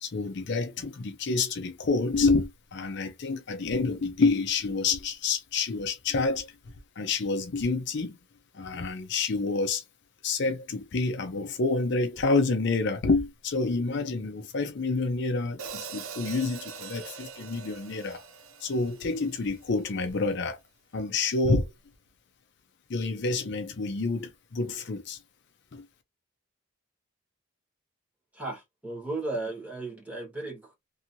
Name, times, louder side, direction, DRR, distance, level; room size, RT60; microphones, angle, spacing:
voice 1, 0.0-6.5 7.0-8.2 8.5-9.8 10.2-18.2 18.6-20.6 20.9-21.7 22.9-25.2 25.7-25.8, left 3 dB, 55° left, 0.5 m, -28 dB
Hi-hat, 15.6-19.8, right 5 dB, 85° right, 0.6 m, -42 dB
voice 2, 28.3-30.7, right 2 dB, 5° right, 1.3 m, -35 dB
2.9 x 2.7 x 2.6 m
head